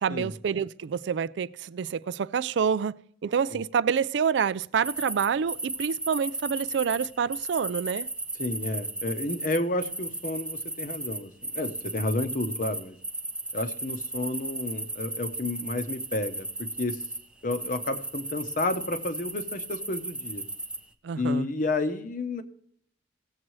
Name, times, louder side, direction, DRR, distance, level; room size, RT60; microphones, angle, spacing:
voice 1, 0.0-8.1 21.0-21.5, right 7 dB, 70° right, 0.3 m, -27 dB
sound 1, 4.8-17.2 17.5-20.8, right 2 dB, 5° right, 0.7 m, -35 dB
voice 2, 8.4-13.0 13.5-17.0 17.4-20.4 21.2-22.4, left 2 dB, 45° left, 0.8 m, -31 dB
17.5 x 7.4 x 3.1 m
head